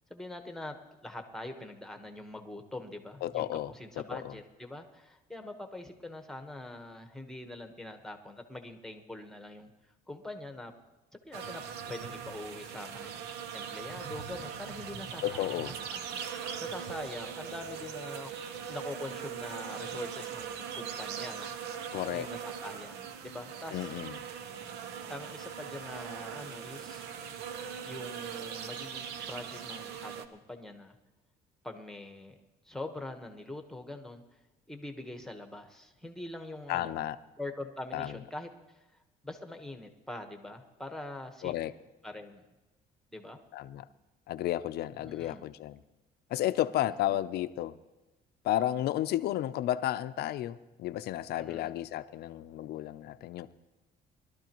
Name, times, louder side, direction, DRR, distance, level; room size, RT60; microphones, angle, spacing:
voice 1, 0.1-9.7 10.1-10.7 11.1-15.6 15.9-16.1 16.4-18.3 18.7-21.5 22.1-24.0 25.1-27.0 27.8-31.0 31.6-32.4 32.6-34.2 34.7-37.0 37.4-38.8 39.2-41.5 42.0-42.4 43.1-43.4 45.0-45.4 47.0-47.2 51.4-51.7, left 1 dB, 5° left, 5 dB, 1.2 m, -43 dB
voice 2, 3.2-3.7 4.1-4.3 15.2-15.7 21.9-22.3 23.7-24.1 36.7-37.2 37.9-38.1 41.4-41.7 43.5-43.8 44.3-45.8 46.3-47.8 48.4-53.5, left 13 dB, 70° left, 12 dB, 0.6 m, -32 dB
sound 1, 11.3-30.2, right 7 dB, 85° right, 0.8 m, -40 dB
21.5 x 12.5 x 3.0 m, 1.1 s
cardioid pair, 110°, 17 cm